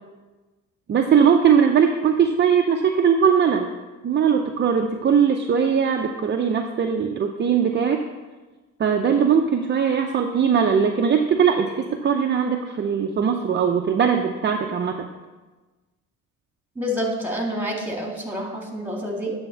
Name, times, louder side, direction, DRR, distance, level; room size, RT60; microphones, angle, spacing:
voice 1, 0.9-3.7 4.0-8.0 8.8-15.1, right 7 dB, 40° right, 3 dB, 0.6 m, -20 dB
voice 2, 16.8-19.3, equal, 5° right, 0 dB, 2.2 m, -28 dB
9.1 x 3.5 x 6.9 m, 1.2 s
cardioid pair, 90°, 30 cm